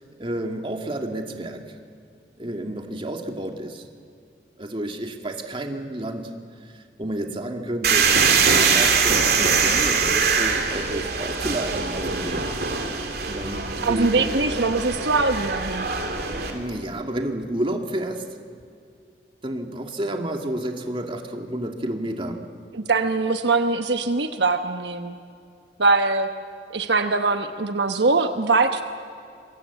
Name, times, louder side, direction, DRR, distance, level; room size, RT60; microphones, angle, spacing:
voice 1, 0.2-1.6 2.4-3.9 4.6-6.3 6.6-12.4 13.3-14.4 16.5-18.2 19.4-22.4, right 1 dB, 30° right, 4 dB, 2.1 m, -30 dB
sound 1, 7.8-16.5, right 5 dB, 60° right, 3.2 m, -22 dB
voice 2, 13.8-15.9 22.7-25.1 25.8-26.3 26.7-28.8, right 3 dB, 75° right, 7 dB, 1.2 m, -22 dB
26.5 x 23.0 x 8.3 m, 2.4 s
head